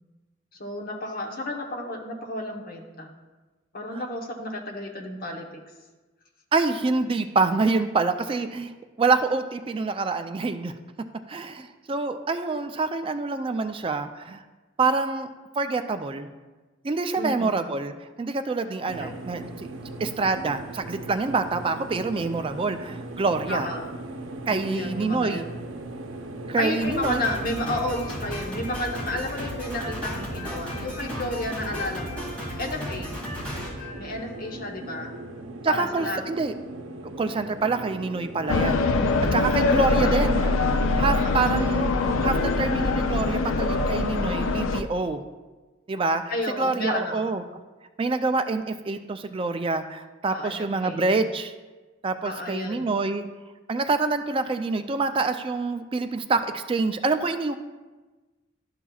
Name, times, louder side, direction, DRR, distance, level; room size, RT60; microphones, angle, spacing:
voice 1, 0.6-3.1 3.7-5.6 17.2-17.6 18.8-19.1 23.5-23.9 24.5-25.5 26.6-32.2 32.6-33.2 34.0-35.1 35.7-36.2 39.4-40.3 41.2-41.5 46.3-47.3 50.3-51.0 52.2-53.0, left 1 dB, 45° left, 1 dB, 1.0 m, -32 dB
voice 2, 6.5-8.7 9.0-10.8 11.3-14.4 14.8-15.3 15.6-16.3 16.8-19.7 20.0-23.7 24.5-25.4 26.5-27.3 35.6-36.5 37.0-38.8 39.3-41.9 42.2-45.2 45.9-47.4 48.0-51.5 52.0-53.3 53.7-57.5, right 3 dB, 25° right, 8 dB, 0.3 m, -26 dB
sound 1, 18.9-38.7, right 2 dB, 85° right, 0.7 m, -39 dB
Drum kit, 26.8-34.6, equal, 5° left, 2.3 m, -35 dB
sound 2, 38.5-44.8, left 3 dB, 80° left, 0.5 m, -23 dB
12.0 x 5.7 x 2.3 m, 1.2 s
head